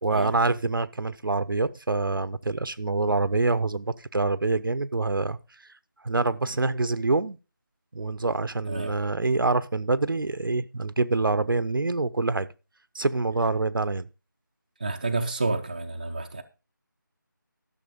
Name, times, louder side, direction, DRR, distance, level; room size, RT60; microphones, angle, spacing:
voice 1, 0.0-5.4 6.0-7.4 7.9-12.5 12.9-14.1, right 3 dB, 80° right, 0.8 m, -26 dB
voice 2, 14.8-16.4, right 3 dB, 25° right, 0.6 m, -29 dB
12.5 x 6.7 x 5.2 m
figure-of-eight pair, 175°, 11 cm